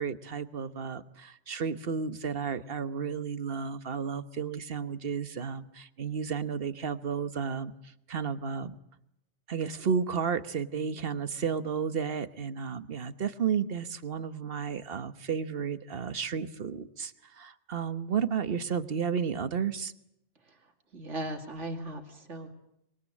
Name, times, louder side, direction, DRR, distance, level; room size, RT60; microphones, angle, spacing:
voice 1, 0.0-7.7 8.1-8.8 9.5-19.9, right 6 dB, 50° right, 13 dB, 1.3 m, -32 dB
voice 2, 20.9-22.5, right 1 dB, 75° right, 4 dB, 2.9 m, -37 dB
26.0 x 22.0 x 8.6 m, 0.80 s
omnidirectional pair, 1.2 m